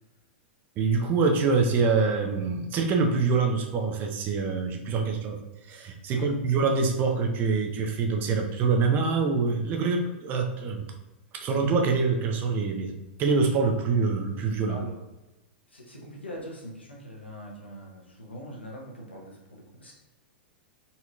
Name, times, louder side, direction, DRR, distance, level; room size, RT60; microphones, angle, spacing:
voice 1, 0.8-5.4 5.7-10.9 11.3-14.8, right 4 dB, 35° right, 3 dB, 0.6 m, -25 dB
voice 2, 14.7-15.0 15.7-19.9, equal, 85° left, -2 dB, 1.0 m, -42 dB
4.0 x 2.9 x 2.4 m, 1.0 s
figure-of-eight pair, 100°, 6 cm